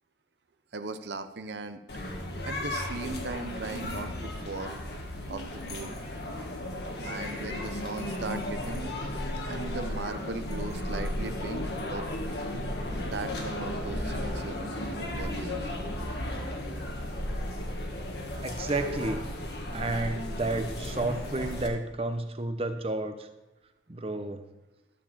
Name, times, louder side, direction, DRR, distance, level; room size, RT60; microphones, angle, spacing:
voice 1, 0.7-1.8 2.4-4.8 5.3-6.0 7.0-9.0 9.5-12.2 13.1-15.7, right 3 dB, 70° right, 9 dB, 0.6 m, -38 dB
sound 1, 1.9-21.7, left 1 dB, 65° left, 1.6 m, -34 dB
sound 2, 10.0-19.3, right 1 dB, 80° left, 3.4 m, -49 dB
voice 2, 18.4-19.2 19.7-23.3 23.9-24.4, right 2 dB, 30° right, 8 dB, 0.8 m, -31 dB
12.5 x 4.7 x 7.2 m, 1.0 s
head